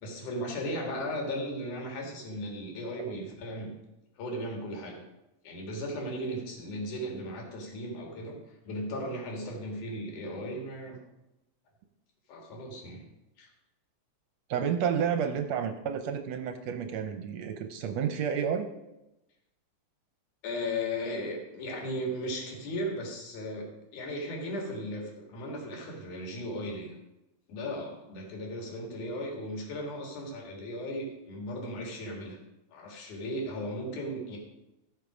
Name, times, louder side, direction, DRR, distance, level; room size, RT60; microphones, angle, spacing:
voice 1, 0.0-3.7 4.2-5.0 5.4-8.4 8.6-11.0 12.3-13.0 13.4-13.5 20.4-26.9 27.5-32.4 32.7-34.4, equal, 90° left, 0 dB, 3.4 m, -36 dB
voice 2, 14.5-18.7, right 7 dB, 75° right, 7 dB, 1.7 m, -30 dB
14.5 x 5.3 x 4.9 m, 0.94 s
omnidirectional pair, 3.4 m